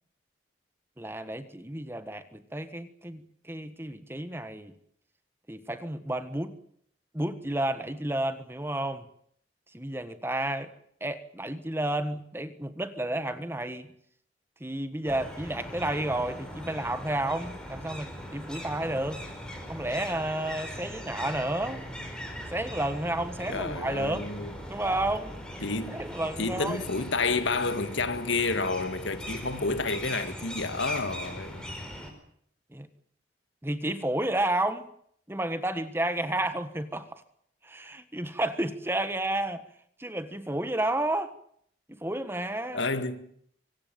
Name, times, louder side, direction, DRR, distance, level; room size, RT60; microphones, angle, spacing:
voice 1, 1.0-4.7 5.5-6.6 7.1-9.1 9.7-10.7 11.0-13.9 14.6-19.2 19.7-21.8 22.5-24.3 24.7-25.3 25.9-26.8 32.7-32.9 33.6-34.9 35.3-37.2 37.6-39.6 40.0-41.3 41.9-42.8, right 1 dB, 10° right, 1.4 m, -31 dB
sound 1, 15.0-32.1, equal, 5° left, 4.9 m, -40 dB
voice 2, 23.5-24.5 25.6-26.0 26.4-31.6 42.7-43.3, left 3 dB, 75° left, 2.1 m, -30 dB
24.5 x 18.0 x 9.2 m
head